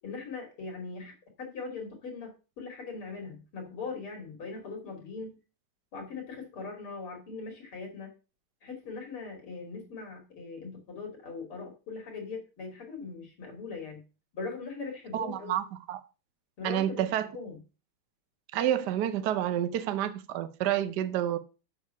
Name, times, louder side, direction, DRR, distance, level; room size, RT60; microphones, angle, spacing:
voice 1, 0.0-1.1 1.4-5.3 5.9-8.1 8.6-14.0 14.3-15.6 16.6-17.0 17.3-17.6, left 4 dB, 90° left, 3.4 m, -40 dB
voice 2, 15.1-16.0 16.6-17.3 18.5-21.4, right 11 dB, 65° right, 1.2 m, -29 dB
7.3 x 6.5 x 5.5 m
omnidirectional pair, 2.3 m